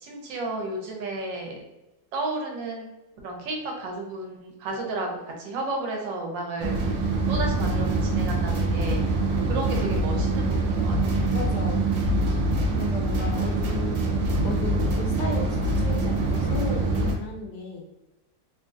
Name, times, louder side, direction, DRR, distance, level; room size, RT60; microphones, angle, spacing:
voice 1, 0.0-1.6 2.1-2.9 3.2-5.1 5.4-6.7 7.3-9.0 9.5-10.9, right 2 dB, 80° right, 0 dB, 1.4 m, -32 dB
sound 1, 6.6-17.1, right 2 dB, 65° right, 0.8 m, -24 dB
voice 2, 11.3-11.9 12.7-17.9, left 3 dB, 70° left, 1 dB, 1.1 m, -35 dB
3.5 x 2.4 x 2.5 m, 0.98 s
omnidirectional pair, 2.0 m